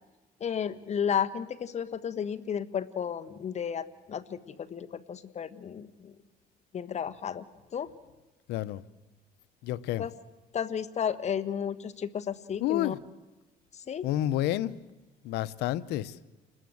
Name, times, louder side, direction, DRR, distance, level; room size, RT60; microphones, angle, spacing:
voice 1, 0.4-6.1 6.7-7.4 7.7-7.9 10.0-10.1 10.5-12.9 13.9-14.1, left 8 dB, 40° left, 1.4 m, -33 dB
voice 2, 8.5-8.8 9.6-10.0 12.6-13.0 14.0-14.8 15.2-16.2, left 13 dB, 85° left, 0.9 m, -29 dB
29.0 x 20.5 x 7.9 m
cardioid pair, 110°, 17 cm